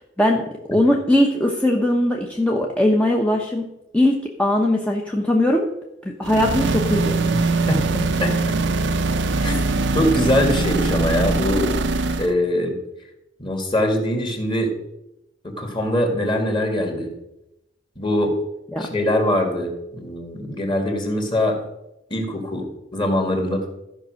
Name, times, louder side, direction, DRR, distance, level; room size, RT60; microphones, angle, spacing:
voice 1, 0.2-3.6 3.9-5.7 6.0-7.2 9.3-9.5 18.7-18.9, left 1 dB, 5° left, 0 dB, 0.8 m, -20 dB
sound 1, 6.2-12.3, right 3 dB, 75° right, 0.7 m, -22 dB
voice 2, 7.7-8.6 9.4-11.7 12.2-12.7 13.4-14.7 15.4-17.1 18.0-18.4 18.8-21.6 22.1-22.7 22.9-23.7, left 1 dB, 25° left, 3 dB, 2.0 m, -22 dB
13.5 x 5.3 x 6.4 m, 0.87 s
head